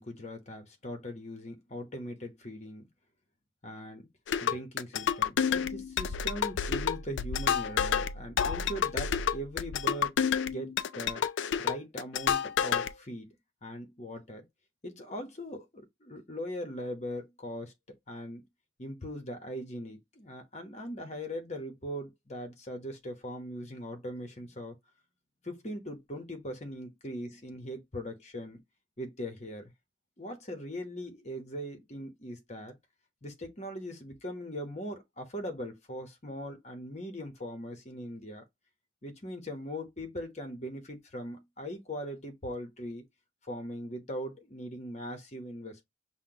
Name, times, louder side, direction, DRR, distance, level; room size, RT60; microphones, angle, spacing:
voice 1, 0.0-2.9 3.6-4.1 4.4-11.2 11.6-13.3 13.6-14.5 14.8-17.7 18.1-18.5 18.8-24.8 25.4-28.6 29.0-29.7 30.2-32.8 33.2-38.4 39.0-43.0 43.5-45.8, equal, 35° left, 1.0 m, -40 dB
sound 1, 4.3-12.9, left 8 dB, 60° left, 0.3 m, -29 dB
5.7 x 2.3 x 2.8 m
head